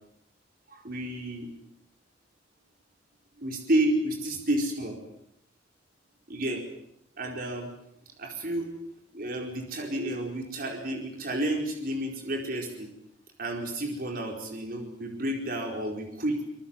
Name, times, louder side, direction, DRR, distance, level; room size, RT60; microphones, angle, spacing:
voice 1, 0.7-1.5 3.4-5.0 6.3-6.6 7.2-7.7 8.2-8.7 9.1-12.9 13.4-16.4, right 1 dB, 50° right, 2 dB, 4.6 m, -30 dB
26.0 x 22.5 x 7.4 m, 0.74 s
head